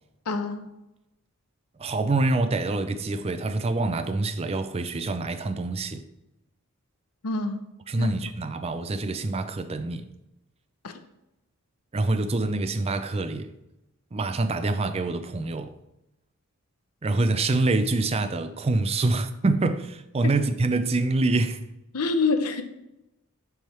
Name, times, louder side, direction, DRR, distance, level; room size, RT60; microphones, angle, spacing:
voice 1, 0.3-0.7 7.2-7.6 8.0-8.1 10.8-10.9 21.9-22.6, left 3 dB, 90° left, 0.8 m, -26 dB
voice 2, 1.8-6.0 7.9-10.1 11.9-13.5 14.1-15.7 17.0-21.6, right 2 dB, 25° right, 0.4 m, -26 dB
9.2 x 3.6 x 4.3 m
head